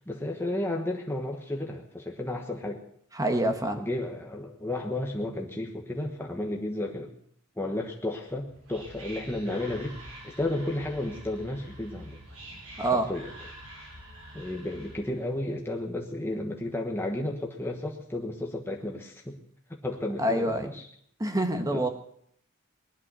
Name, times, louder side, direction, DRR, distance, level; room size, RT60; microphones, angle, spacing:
voice 1, 0.1-2.8 3.8-7.1 7.6-12.2 12.9-13.3 14.3-19.4 19.8-20.9 21.6-21.9, left 1 dB, 10° left, 0 dB, 1.3 m, -33 dB
voice 2, 3.1-3.8 12.8-13.1 20.2-20.7 21.2-21.9, right 1 dB, 15° right, 6 dB, 1.5 m, -26 dB
Whispering, 8.3-15.2, right 1 dB, 85° right, 6.5 m, -46 dB
19.5 x 11.0 x 6.2 m, 0.66 s
head